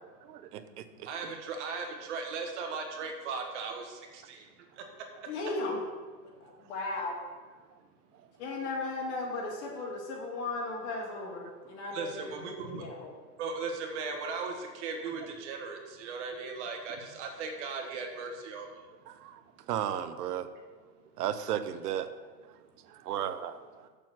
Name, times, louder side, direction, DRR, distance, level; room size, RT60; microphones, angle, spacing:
voice 1, 0.2-1.1 19.1-19.4 19.7-20.5 21.2-22.1 22.9-23.9, right 10 dB, 70° right, 12 dB, 0.8 m, -35 dB
voice 2, 1.0-4.4 11.9-12.8 13.4-18.7, right 4 dB, 45° right, 3 dB, 1.4 m, -37 dB
voice 3, 5.3-5.8 6.4-7.1 8.4-13.1, left 3 dB, 45° left, -2 dB, 2.2 m, -36 dB
6.9 x 6.0 x 6.0 m, 1.4 s
supercardioid pair, 160°, 48 cm